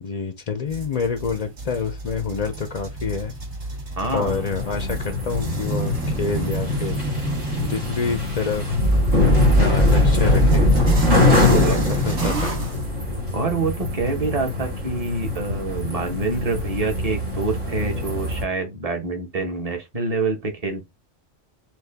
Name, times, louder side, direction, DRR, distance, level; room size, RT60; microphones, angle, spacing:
voice 1, 0.0-3.3 4.1-7.0 7.6-8.8 9.1-10.7 11.3-12.6, left 5 dB, 50° left, 0.5 m, -27 dB
sound 1, 0.7-12.8, right 3 dB, 65° right, 2.0 m, -30 dB
voice 2, 4.0-4.4 11.1-11.8 13.3-20.9, right 3 dB, 30° right, 1.0 m, -26 dB
sound 2, 4.3-18.4, left 2 dB, 80° right, 2.6 m, -22 dB
6.0 x 2.4 x 3.4 m
omnidirectional pair, 1.3 m